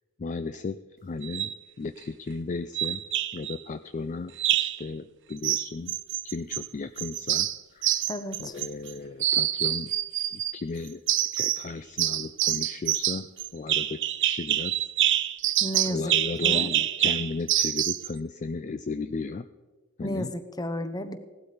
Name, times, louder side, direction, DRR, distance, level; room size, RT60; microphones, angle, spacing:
voice 1, 0.2-3.0 3.3-4.3 4.6-6.0 6.2-8.0 8.4-9.9 10.3-11.0 11.3-14.7 15.4-15.6 15.9-19.4 20.0-20.3, left 3 dB, 35° left, 12 dB, 0.4 m, -35 dB
sound 1, 1.2-1.6 2.7-3.5 4.4-4.8 5.4-6.7 7.0-8.9 9.2-10.5 11.1-11.7 12.0-18.1, right 12 dB, 55° right, 0.6 m, -26 dB
voice 2, 8.1-8.5 15.6-16.1 16.4-16.7 20.0-21.2, equal, 15° left, 10 dB, 0.9 m, -33 dB
17.0 x 12.0 x 5.1 m, 1.3 s
head